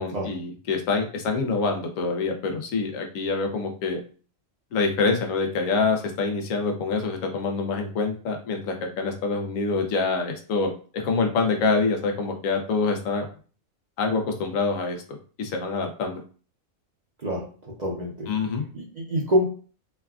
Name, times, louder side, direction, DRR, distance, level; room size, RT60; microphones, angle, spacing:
voice 1, 0.0-4.0 4.7-13.2 14.0-15.0 15.4-16.2 18.3-18.6, left 4 dB, 85° left, 3 dB, 1.0 m, -26 dB
voice 2, 17.2-18.3 18.7-19.4, equal, 40° right, -4 dB, 0.7 m, -26 dB
3.2 x 2.2 x 2.3 m, 0.39 s
omnidirectional pair, 1.4 m